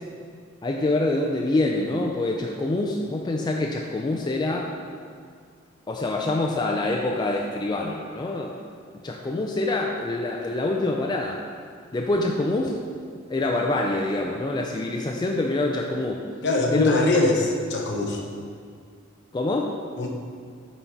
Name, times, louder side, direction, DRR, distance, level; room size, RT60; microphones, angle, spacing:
voice 1, 0.6-4.7 5.9-8.6 9.0-11.4 11.9-12.7 13.3-16.2 16.7-17.0 19.3-19.7, left 2 dB, 20° left, 0 dB, 0.3 m, -25 dB
voice 2, 16.4-18.2 20.0-20.1, left 2 dB, 60° left, 1 dB, 0.8 m, -22 dB
7.1 x 4.1 x 4.6 m, 2.1 s
head